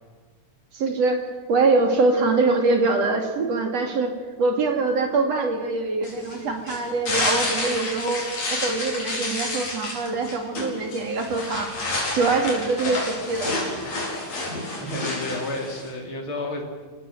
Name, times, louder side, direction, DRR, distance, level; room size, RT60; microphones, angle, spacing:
voice 1, 0.7-11.7 12.1-13.6, right 3 dB, 55° right, 4 dB, 3.6 m, -23 dB
sound 1, 6.0-15.9, left 2 dB, 55° left, 6.1 m, -29 dB
voice 2, 14.7-16.6, left 2 dB, 40° left, 2 dB, 4.0 m, -31 dB
28.5 x 18.0 x 7.7 m, 1.4 s
omnidirectional pair, 3.6 m